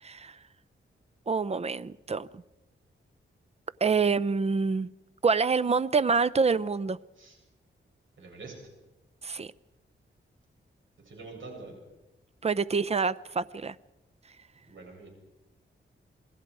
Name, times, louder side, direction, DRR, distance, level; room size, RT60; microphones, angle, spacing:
voice 1, 0.0-0.4 1.3-2.4 3.8-4.9 5.2-7.0 9.2-9.5 12.4-13.8, right 5 dB, 30° right, 0.6 m, -26 dB
voice 2, 8.2-8.5 11.0-11.8 14.6-15.1, right 3 dB, 70° right, 7.9 m, -45 dB
27.5 x 20.0 x 4.8 m
wide cardioid pair, 95°, 21 cm